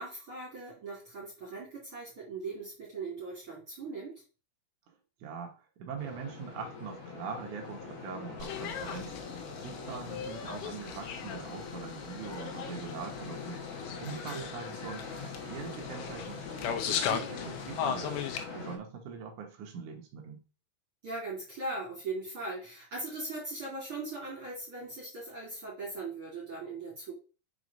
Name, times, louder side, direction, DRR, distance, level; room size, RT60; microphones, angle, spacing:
voice 1, 0.0-4.2 14.1-14.5 21.0-27.1, right 3 dB, 35° right, -5 dB, 2.6 m, -39 dB
voice 2, 5.2-9.2 9.6-13.6 14.0-18.3 18.5-20.4, right 6 dB, 75° right, 2 dB, 1.8 m, -42 dB
sound 1, 6.0-18.8, left 4 dB, 55° left, 1.8 m, -43 dB
sound 2, 8.4-18.5, left 8 dB, 75° left, 2.7 m, -38 dB
6.2 x 4.8 x 5.2 m, 0.34 s
omnidirectional pair, 5.1 m